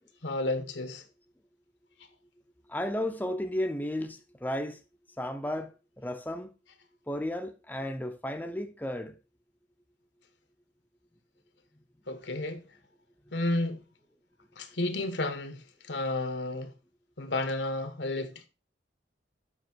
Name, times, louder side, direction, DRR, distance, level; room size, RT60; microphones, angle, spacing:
voice 1, 0.2-1.0 12.1-12.6 13.3-13.8 14.6-16.7 17.2-18.5, left 2 dB, 70° left, 1.3 m, -32 dB
voice 2, 2.7-4.8 5.2-6.5 7.1-9.2, left 1 dB, 10° left, 0.6 m, -33 dB
7.9 x 5.9 x 4.5 m
head